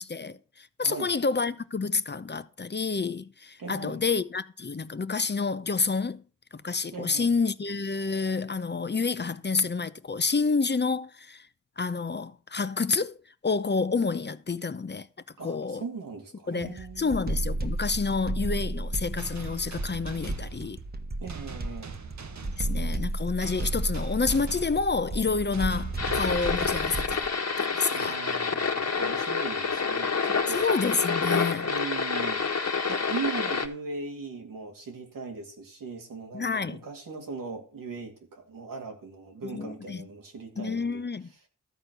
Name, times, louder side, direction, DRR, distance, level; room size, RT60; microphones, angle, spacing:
voice 1, 0.0-6.2 6.5-11.5 11.8-13.2 13.4-15.1 15.4-15.8 16.5-20.8 22.5-27.3 27.6-28.2 30.5-31.7 36.3-36.8 39.5-40.1 40.6-41.3, left 4 dB, 30° left, 0.8 m, -29 dB
voice 2, 3.6-4.1 6.9-7.4 15.4-17.2 21.2-22.0 27.9-30.7 31.6-41.1, right 4 dB, 85° right, 2.5 m, -39 dB
sound 1, 16.6-27.3, right 2 dB, 30° right, 1.3 m, -33 dB
sound 2, 19.2-27.6, right 5 dB, 60° right, 1.2 m, -44 dB
sound 3, 26.0-33.7, left 5 dB, 50° left, 1.5 m, -28 dB
13.5 x 4.5 x 6.7 m
cardioid pair, 40°, 32 cm